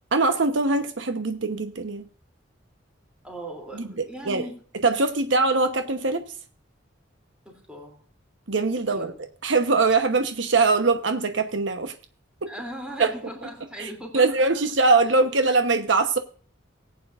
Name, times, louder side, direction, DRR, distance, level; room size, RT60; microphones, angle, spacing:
voice 1, 0.1-2.1 3.7-4.4 4.8-6.2 8.5-9.1 9.4-11.9 12.4-12.5 13.0-13.1 13.8-16.2, right 3 dB, 75° right, 1.0 m, -22 dB
voice 2, 3.2-4.5 7.4-8.0 8.9-9.2 12.5-14.4, right 1 dB, 5° right, 3.0 m, -38 dB
19.5 x 8.6 x 2.5 m
head